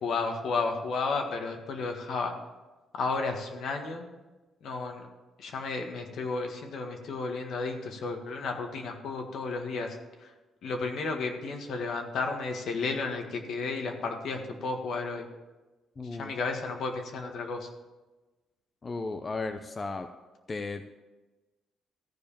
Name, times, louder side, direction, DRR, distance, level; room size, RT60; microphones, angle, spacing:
voice 1, 0.0-2.3 2.9-4.1 4.6-5.0 5.4-9.9 10.6-15.3 16.1-17.7, left 4 dB, 70° left, 3 dB, 1.7 m, -32 dB
voice 2, 16.0-16.3 18.8-20.1 20.5-21.0, left 3 dB, 30° left, 7 dB, 0.6 m, -35 dB
14.5 x 4.9 x 7.1 m, 1.2 s
cardioid pair, 90°, 0 cm